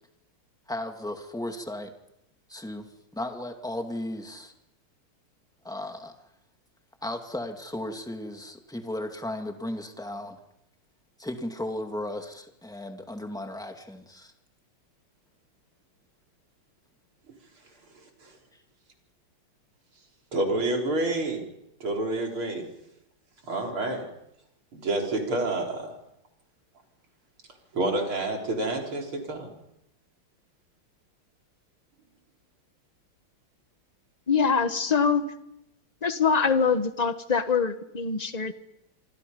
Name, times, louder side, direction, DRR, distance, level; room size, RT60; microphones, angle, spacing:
voice 1, 0.7-1.9 2.5-2.9 3.1-4.5 5.6-6.1 7.0-10.4 11.2-14.3, left 1 dB, ahead, 4 dB, 2.0 m, -35 dB
voice 2, 20.3-21.4 21.8-22.7 23.4-24.1 24.7-25.9 27.7-29.5, right 2 dB, 70° right, 1 dB, 4.9 m, -28 dB
voice 3, 34.3-35.2 36.0-38.5, left 5 dB, 25° left, 9 dB, 1.1 m, -24 dB
26.5 x 26.5 x 5.4 m, 0.83 s
omnidirectional pair, 2.4 m